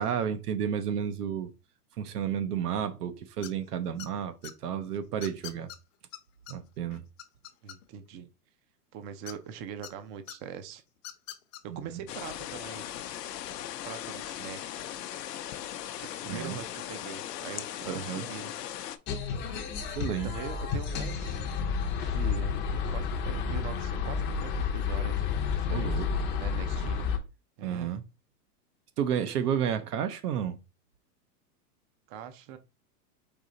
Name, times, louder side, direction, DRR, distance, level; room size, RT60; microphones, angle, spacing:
voice 1, 0.0-1.5 2.0-5.7 6.5-7.0 11.7-12.0 16.3-16.6 17.9-18.3 20.0-20.3 25.7-26.1 27.6-28.0 29.0-30.6, right 8 dB, 75° right, 0.9 m, -31 dB
sound 1, 3.4-3.7 4.0-4.5 5.2-5.8 6.1-6.2 6.5-6.6 6.9-8.1 9.3-9.9 10.3-10.4 11.0-11.6, left 12 dB, 55° left, 0.8 m, -43 dB
voice 2, 7.6-8.3 8.9-10.8 11.6-12.9 13.8-14.7 15.9-18.5 20.1-21.4 22.0-22.6 22.9-26.1 26.4-27.1 27.6-27.9 32.1-32.6, right 8 dB, 30° right, 0.5 m, -42 dB
sound 2, 12.1-19.0, left 11 dB, 90° left, 0.7 m, -38 dB
sound 3, 19.1-27.2, left 6 dB, 25° left, 0.6 m, -31 dB
4.9 x 2.8 x 3.9 m
hypercardioid pair, 135°, 47 cm